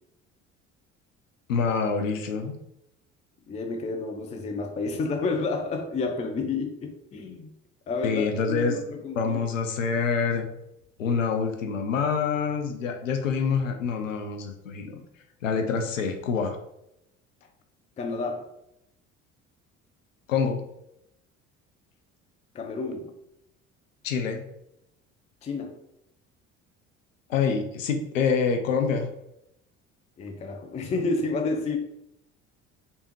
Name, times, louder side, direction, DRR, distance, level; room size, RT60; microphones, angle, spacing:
voice 1, 1.5-2.6 8.0-8.8 9.1-10.5 11.0-15.0 15.4-16.6 20.3-20.6 24.0-24.4 27.3-29.1, left 5 dB, 80° left, 5 dB, 0.5 m, -26 dB
voice 2, 3.5-7.5 7.9-9.5 18.0-18.4 22.5-23.1 25.4-25.8 30.2-31.8, left 3 dB, 20° left, 4 dB, 0.4 m, -30 dB
3.3 x 2.7 x 2.9 m, 0.83 s
figure-of-eight pair, 60°, 38 cm